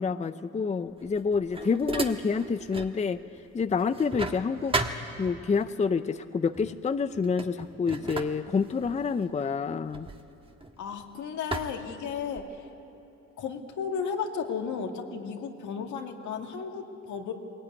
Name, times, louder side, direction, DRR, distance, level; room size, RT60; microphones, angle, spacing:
voice 1, 0.0-3.2 3.5-4.8 5.2-10.1, left 5 dB, 25° left, 12 dB, 0.5 m, -28 dB
sound 1, 1.0-3.0 3.4-5.7 6.5-6.8 7.1-11.0 11.5-12.6, right 2 dB, 20° right, 1.5 m, -35 dB
voice 2, 10.8-12.4 13.4-17.3, left 6 dB, 75° left, 3 dB, 2.2 m, -34 dB
20.5 x 18.0 x 9.6 m, 2.9 s
cardioid pair, 90°, 30 cm